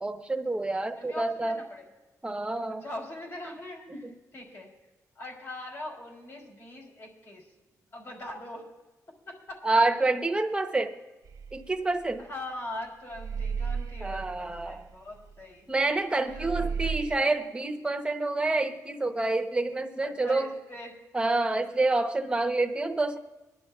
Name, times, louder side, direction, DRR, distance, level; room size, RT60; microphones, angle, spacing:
voice 1, 0.0-1.6 2.2-2.8 3.4-3.5 3.9-4.1 9.6-11.0 11.5-12.3 14.0-14.8 15.7-20.6 21.1-23.2, right 2 dB, 15° right, 5 dB, 0.9 m, -28 dB
voice 2, 0.9-1.9 2.7-4.7 5.1-7.4 7.9-8.7 9.2-9.6 12.3-15.6 16.1-17.3 20.0-21.0, left 1 dB, 40° left, 0 dB, 3.4 m, -42 dB
sound 1, 11.2-12.7 13.1-16.0 16.3-17.2, right 6 dB, 60° right, 0.6 m, -34 dB
24.0 x 10.5 x 2.4 m, 1.1 s
wide cardioid pair, 140°, 7 cm